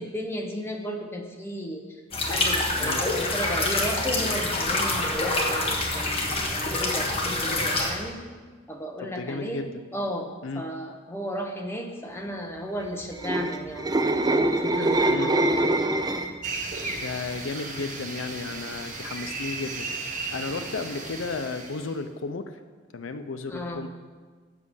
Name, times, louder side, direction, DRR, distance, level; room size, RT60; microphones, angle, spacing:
voice 1, 0.0-1.8 2.3-8.2 8.7-9.6 9.9-14.1 14.6-15.7 23.5-23.8, equal, 10° left, 1 dB, 1.0 m, -34 dB
sound 1, 2.1-7.9, left 2 dB, 30° left, 1.4 m, -26 dB
voice 2, 9.0-9.8 10.4-10.6 15.1-15.3 17.0-19.9 20.3-22.5 22.9-23.9, left 3 dB, 75° left, 9 dB, 0.5 m, -33 dB
sound 2, 13.0-16.5 16.9-17.2, right 1 dB, 20° right, 0.5 m, -24 dB
sound 3, 16.4-21.9, right 3 dB, 40° right, 1.3 m, -35 dB
8.6 x 6.2 x 7.1 m, 1.5 s
head